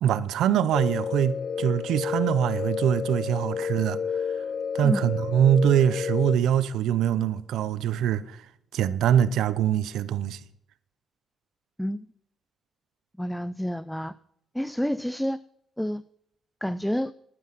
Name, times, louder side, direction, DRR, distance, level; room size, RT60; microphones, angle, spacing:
voice 1, 0.0-4.0 4.7-8.3 8.7-10.4, right 10 dB, 80° right, 0.6 m, -23 dB
sound 1, 0.7-6.4, left 6 dB, 60° left, 0.5 m, -30 dB
voice 2, 13.2-14.1 14.5-15.4 15.8-16.0 16.6-17.1, equal, 5° left, 0.3 m, -28 dB
11.0 x 9.6 x 5.8 m
cardioid pair, 90°, 0 cm